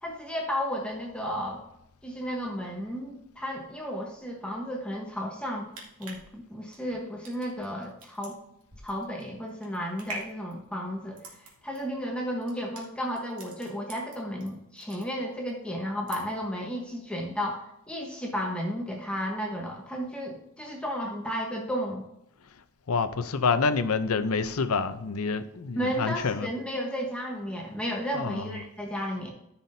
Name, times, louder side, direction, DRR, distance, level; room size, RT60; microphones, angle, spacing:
voice 1, 0.0-1.6 2.0-5.7 6.0-8.4 8.8-22.0 25.8-29.3, equal, 5° left, -1 dB, 1.1 m, -33 dB
sound 1, 5.5-14.5 14.8-15.5 15.8-16.5 16.9-17.0, right 2 dB, 85° right, 2.4 m, -45 dB
voice 2, 22.9-26.5 28.1-28.6, left 4 dB, 80° left, 12 dB, 0.6 m, -27 dB
14.0 x 5.8 x 2.7 m, 0.84 s
head